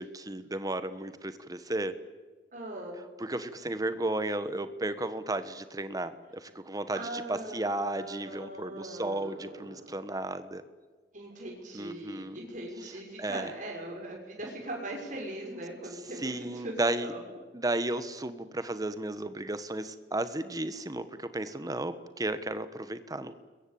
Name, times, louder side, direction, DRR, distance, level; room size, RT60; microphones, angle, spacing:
voice 1, 0.0-2.0 3.2-10.6 11.7-12.4 13.2-13.5 16.2-17.1 17.5-23.3, right 2 dB, 20° right, 12 dB, 1.4 m, -34 dB
voice 2, 2.5-3.0 6.9-9.9 11.1-16.7 17.0-17.4, right 1 dB, 45° right, -1 dB, 6.3 m, -40 dB
28.0 x 22.5 x 8.7 m, 1.4 s
head